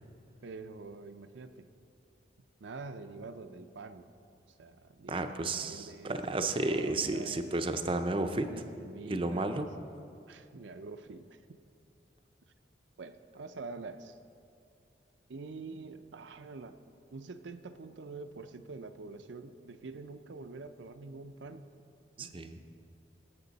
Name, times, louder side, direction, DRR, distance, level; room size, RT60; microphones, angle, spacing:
voice 1, 0.4-1.7 2.6-4.1 4.6-7.5 8.5-9.7 10.3-11.6 13.0-14.2 15.3-16.8 17.1-21.7 22.2-22.4, right 3 dB, 75° right, 9 dB, 0.5 m, -46 dB
voice 2, 5.1-8.5 9.1-9.7 22.2-22.6, right 2 dB, 30° right, 7 dB, 0.5 m, -32 dB
18.0 x 7.8 x 4.0 m, 2.5 s
head